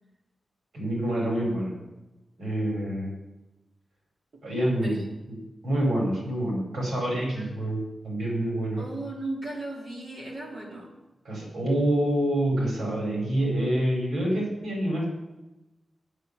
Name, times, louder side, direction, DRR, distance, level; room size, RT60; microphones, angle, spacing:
voice 1, 0.7-1.7 2.4-3.1 4.4-5.4 5.6-8.8 11.2-15.1, right 1 dB, 85° right, -2 dB, 4.7 m, -27 dB
voice 2, 4.8-5.2 7.3-7.5 8.8-10.9, right 2 dB, 60° right, -2 dB, 3.2 m, -37 dB
9.7 x 9.3 x 6.9 m, 1.0 s
wide cardioid pair, 85°, 0 cm